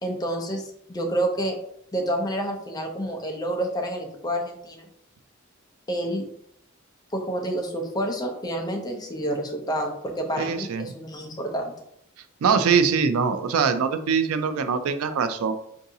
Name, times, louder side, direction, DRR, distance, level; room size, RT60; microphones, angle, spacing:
voice 1, 0.0-1.6 1.9-4.8 5.9-6.3 7.1-11.7, right 1 dB, 20° left, 2 dB, 0.5 m, -29 dB
voice 2, 10.4-10.8 12.4-15.5, right 6 dB, 80° right, 10 dB, 0.4 m, -23 dB
4.6 x 2.6 x 2.7 m, 0.73 s
head